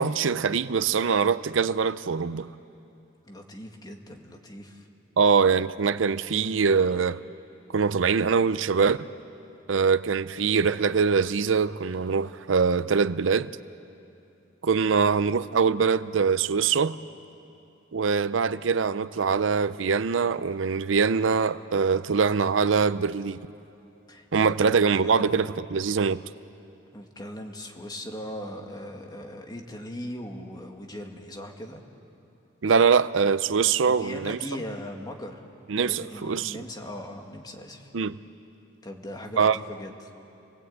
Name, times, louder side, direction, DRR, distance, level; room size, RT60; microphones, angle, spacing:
voice 1, 0.0-2.5 5.2-7.2 7.7-9.1 9.7-13.5 14.6-17.0 17.9-23.4 24.3-26.2 32.6-34.4 35.7-36.6 37.9-38.2 39.4-39.6, right 5 dB, 80° right, 0.6 m, -23 dB
voice 2, 3.2-4.9 24.1-24.7 25.0-25.5 26.9-31.8 33.9-35.4 35.7-37.9 38.8-40.1, left 1 dB, 20° left, 2.0 m, -39 dB
28.5 x 20.0 x 8.7 m
head